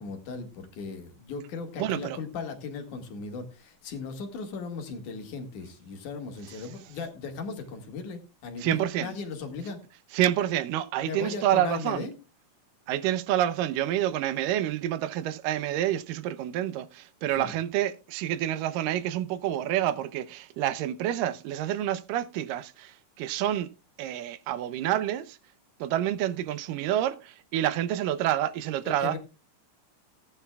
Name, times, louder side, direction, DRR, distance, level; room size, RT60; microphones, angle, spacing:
voice 1, 0.0-9.8 11.0-12.1 17.4-17.5 28.8-29.2, left 4 dB, 70° left, 3.2 m, -37 dB
voice 2, 1.8-2.2 8.6-9.1 10.1-12.1 12.9-23.7 24.0-25.4 25.8-29.2, right 12 dB, 85° right, 2.4 m, -28 dB
18.0 x 9.9 x 2.3 m
omnidirectional pair, 3.8 m